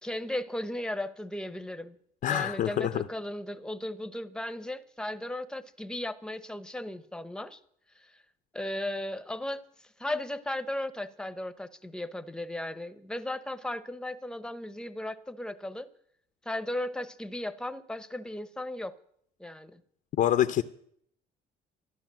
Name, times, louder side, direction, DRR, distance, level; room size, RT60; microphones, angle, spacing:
voice 1, 0.0-2.0 2.3-7.6 8.0-8.1 8.5-9.6 10.0-15.9 16.4-18.9 19.4-19.8, left 1 dB, 5° left, 0.9 m, -36 dB
voice 2, 2.2-3.0 20.2-20.6, left 11 dB, 55° left, 0.7 m, -26 dB
13.0 x 11.0 x 7.5 m
cardioid pair, 110°, 17 cm